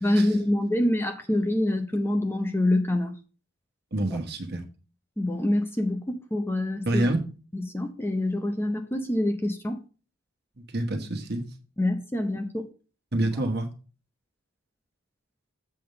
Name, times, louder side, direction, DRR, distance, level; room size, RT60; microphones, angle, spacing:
voice 1, 0.0-3.1 5.2-7.0 7.5-9.8 11.8-12.7, left 1 dB, 10° left, 0.7 m, -26 dB
voice 2, 3.9-4.6 6.9-7.2 10.6-11.4 13.1-13.7, right 1 dB, 50° right, 1.4 m, -27 dB
7.7 x 3.6 x 6.6 m
head